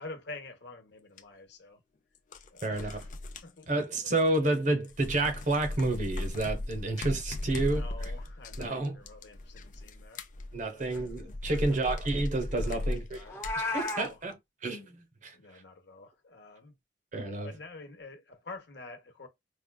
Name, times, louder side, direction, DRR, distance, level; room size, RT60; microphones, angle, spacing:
voice 1, 0.0-1.8 2.5-3.1 3.4-3.7 4.0-4.4 7.4-10.2 10.7-11.0 11.5-11.8 12.6-14.2 15.3-16.7 17.4-19.3, left 3 dB, 65° left, 0.9 m, -48 dB
sound 1, 1.2-1.3 2.1-4.6 4.8-14.1, left 1 dB, 45° left, 0.5 m, -37 dB
voice 2, 2.6-3.0 3.7-7.8 8.6-9.0 10.5-13.2 13.6-15.4 17.1-17.5, right 2 dB, 45° right, 0.9 m, -30 dB
Meow, 13.3-14.1, left 2 dB, 15° left, 0.8 m, -33 dB
5.2 x 2.3 x 2.2 m
head